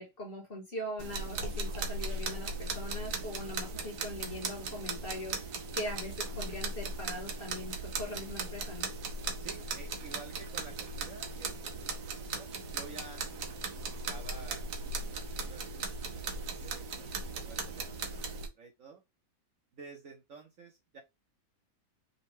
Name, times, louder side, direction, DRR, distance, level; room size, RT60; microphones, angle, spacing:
voice 1, 0.0-8.9, left 1 dB, 35° left, 1.3 m, -41 dB
sound 1, 1.0-18.5, right 3 dB, 70° right, 1.4 m, -38 dB
voice 2, 9.4-13.5 13.8-14.7 15.0-15.8 16.1-19.0 19.7-21.0, right 3 dB, 55° right, 1.1 m, -51 dB
5.3 x 2.2 x 3.3 m
omnidirectional pair, 1.9 m